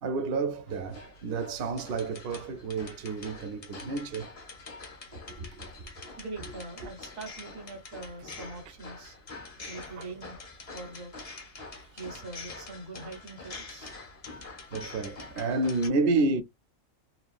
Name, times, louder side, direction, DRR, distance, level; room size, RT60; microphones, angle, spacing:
voice 1, 0.0-4.3 5.3-5.9 9.6-10.1 14.7-16.4, right 3 dB, 60° right, 0.7 m, -30 dB
sound 1, 0.7-15.9, left 3 dB, 35° left, 0.6 m, -45 dB
voice 2, 6.2-9.2 9.7-10.4 10.7-11.1 11.9-14.0, right 3 dB, 80° right, 1.5 m, -43 dB
2.9 x 2.2 x 2.4 m
omnidirectional pair, 1.3 m